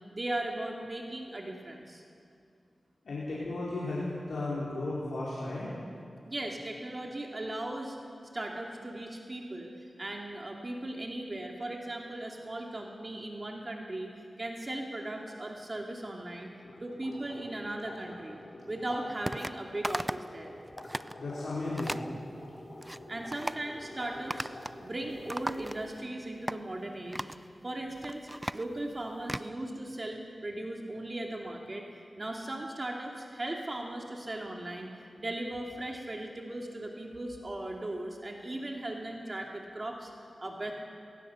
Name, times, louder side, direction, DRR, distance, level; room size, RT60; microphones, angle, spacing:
voice 1, 0.1-2.0 6.3-8.0 8.3-9.7 10.0-14.1 14.4-16.5 16.8-18.4 18.7-20.5 23.1-24.5 24.8-27.2 27.6-31.8 32.2-40.7, right 1 dB, 40° right, 1 dB, 2.6 m, -38 dB
voice 2, 3.0-4.0 4.3-5.7 21.2-22.1, left 2 dB, 85° left, -8 dB, 4.6 m, -34 dB
sound 1, 16.6-26.1, left 1 dB, 55° left, 5.8 m, -47 dB
sound 2, 19.3-19.6 19.8-20.3 20.7-21.1 21.8-22.1 22.6-23.0 23.3-23.6 24.3-24.8 25.1-26.0 26.5-26.6 27.1-27.4 27.9-29.5, right 1 dB, 15° right, 0.5 m, -37 dB
21.0 x 18.5 x 7.0 m, 2.3 s
cardioid pair, 45°, 0 cm